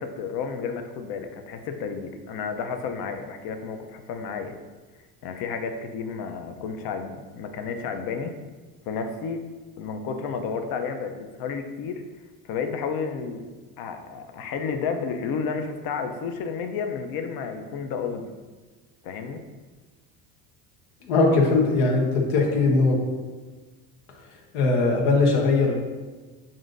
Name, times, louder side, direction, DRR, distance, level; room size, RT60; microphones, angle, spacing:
voice 1, 0.0-4.5 5.2-8.4 8.9-9.4 9.8-12.0 12.4-13.5 13.8-18.3 19.0-19.4, left 5 dB, 60° left, 6 dB, 0.6 m, -31 dB
voice 2, 21.0-23.0 24.5-25.7, left 3 dB, 85° left, 0 dB, 1.0 m, -20 dB
7.1 x 2.6 x 2.6 m, 1.3 s
supercardioid pair, 95°, 42 cm